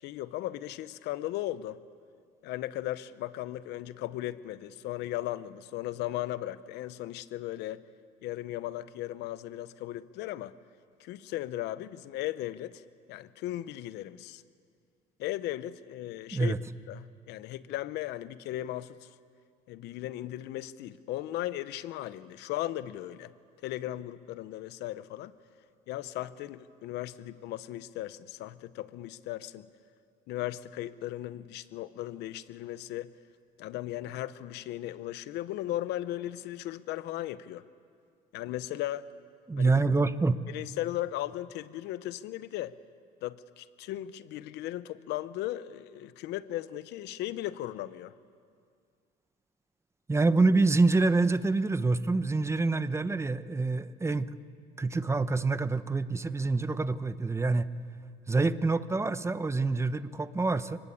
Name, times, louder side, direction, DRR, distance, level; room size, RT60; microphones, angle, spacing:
voice 1, 0.0-1.8 2.4-7.8 8.2-10.5 11.0-12.8 13.1-14.4 15.2-16.5 16.9-19.1 19.7-23.3 23.6-25.3 25.9-29.7 30.3-33.1 33.6-37.6 38.3-39.1 39.6-39.7 40.5-42.8 43.2-48.2, left 14 dB, 85° left, 15 dB, 0.8 m, -37 dB
voice 2, 39.5-40.4 50.1-54.3 54.8-57.7 58.3-60.8, right 3 dB, 15° right, 13 dB, 0.8 m, -26 dB
30.0 x 20.0 x 8.5 m, 2.2 s
cardioid pair, 110°, 17 cm